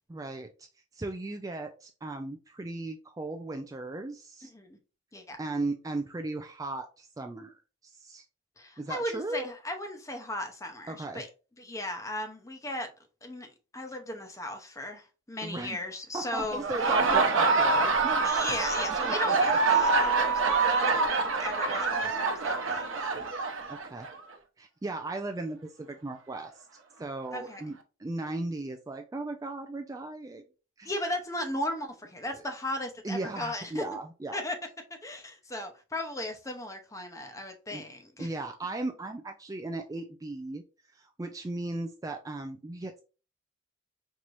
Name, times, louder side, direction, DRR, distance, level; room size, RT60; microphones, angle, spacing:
voice 1, 0.1-0.7 0.9-4.5 5.4-8.3 8.8-9.5 10.9-11.3 15.4-15.8 16.1-18.3 19.0-19.4 23.7-24.1 24.6-26.7 27.0-27.7 28.0-30.4 30.8-31.0 33.0-34.4 37.7-37.8 38.2-40.6 40.9-43.0, right 2 dB, 15° right, 0.3 m, -37 dB
voice 2, 8.6-11.3 11.6-12.9 13.2-16.6 18.2-23.3 27.3-27.8 30.8-33.8 34.3-34.6 35.0-38.3, left 1 dB, 15° left, 0.7 m, -36 dB
Laughter, 16.5-24.2, right 4 dB, 70° right, 0.8 m, -26 dB
4.7 x 2.9 x 2.5 m
head